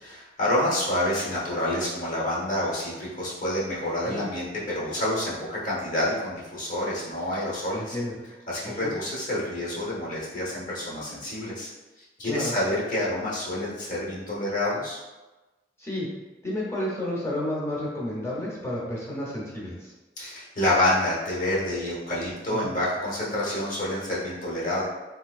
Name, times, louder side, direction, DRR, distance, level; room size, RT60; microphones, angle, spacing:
voice 1, 0.0-7.9 8.5-11.7 12.2-15.0 20.2-24.8, left 1 dB, 45° left, -6 dB, 0.9 m, -28 dB
voice 2, 7.7-8.1 8.8-8.9 12.2-12.5 15.8-16.1 16.4-19.9 22.6-22.7, left 1 dB, 15° left, -5 dB, 0.8 m, -31 dB
3.5 x 2.7 x 2.4 m, 1.1 s
head